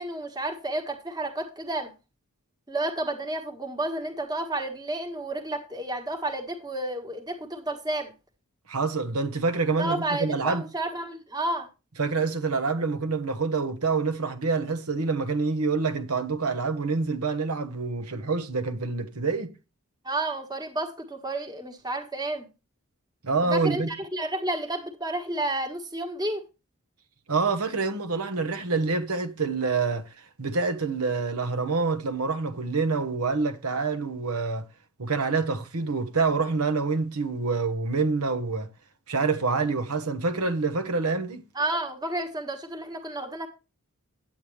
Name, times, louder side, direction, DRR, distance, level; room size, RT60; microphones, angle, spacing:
voice 1, 0.0-1.9 2.7-8.1 9.8-11.7 20.0-22.5 23.5-26.4 41.5-43.5, right 2 dB, 20° right, 1.5 m, -31 dB
voice 2, 8.7-10.6 12.0-19.5 23.2-23.9 27.3-30.0 30.4-34.6 35.0-38.7 39.1-41.4, right 4 dB, 85° right, 1.2 m, -26 dB
9.4 x 8.8 x 3.2 m
head